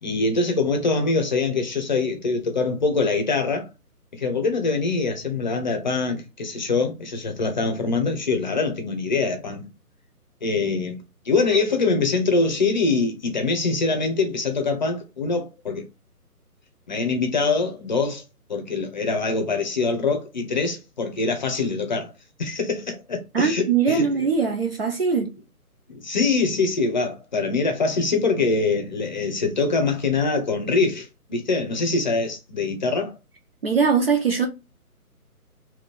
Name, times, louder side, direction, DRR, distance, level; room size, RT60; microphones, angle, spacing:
voice 1, 0.0-3.7 4.1-9.7 10.4-15.9 16.9-18.2 18.5-22.1 22.4-24.0 25.9-33.1, left 3 dB, 30° left, 0.8 m, -24 dB
voice 2, 23.3-25.3 33.6-34.5, right 5 dB, 40° right, 0.7 m, -21 dB
4.2 x 2.6 x 3.4 m
figure-of-eight pair, 150°, 46 cm